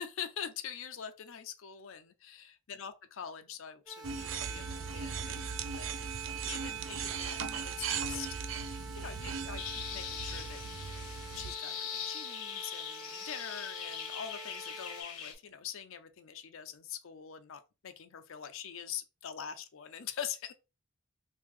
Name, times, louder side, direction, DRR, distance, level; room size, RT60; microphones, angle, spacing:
voice 1, 0.0-5.9 6.5-10.6 11.3-20.5, left 8 dB, 60° left, 0.5 m, -44 dB
sound 1, 3.9-15.0, right 2 dB, 15° right, 0.8 m, -49 dB
sound 2, 4.0-11.5, right 6 dB, 55° right, 0.4 m, -38 dB
sound 3, 9.6-15.3, left 8 dB, 85° left, 1.0 m, -41 dB
3.6 x 2.8 x 3.1 m
head